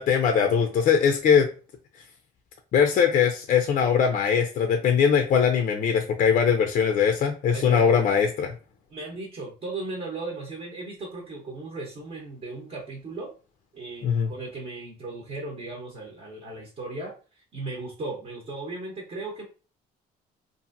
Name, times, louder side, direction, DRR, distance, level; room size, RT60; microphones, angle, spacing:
voice 1, 0.0-1.5 2.7-8.5 14.0-14.3, left 7 dB, 50° left, 5 dB, 0.4 m, -21 dB
voice 2, 7.5-8.1 8.9-13.3 13.7-19.4, right 3 dB, 40° right, -1 dB, 0.8 m, -36 dB
2.7 x 2.5 x 2.5 m, 0.35 s
cardioid pair, 110°, 17 cm